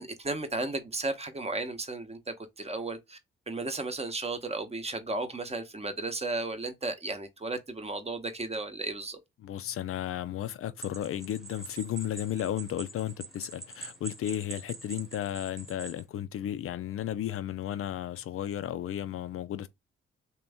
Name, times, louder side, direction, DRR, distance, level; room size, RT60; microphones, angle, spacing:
voice 1, 0.0-3.2 3.5-9.2, right 2 dB, 20° right, 0.9 m, -34 dB
voice 2, 9.4-19.7, left 11 dB, 45° left, 0.5 m, -34 dB
sound 1, 10.8-16.0, right 3 dB, ahead, 1.1 m, -44 dB
3.4 x 3.0 x 3.4 m
figure-of-eight pair, 40°, 30 cm